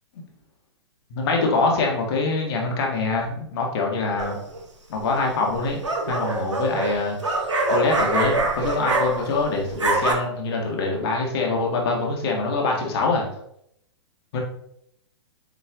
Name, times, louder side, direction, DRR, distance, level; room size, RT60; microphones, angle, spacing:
voice 1, 1.1-4.4 4.9-5.8 6.1-7.4 7.7-13.2 14.3-14.4, left 3 dB, 60° left, 0 dB, 1.8 m, -24 dB
sound 1, 4.2-4.6 5.5-9.4 9.7-10.1, right 2 dB, 90° right, 1.1 m, -24 dB
7.8 x 3.2 x 3.7 m, 0.73 s
hypercardioid pair, 110°, 15 cm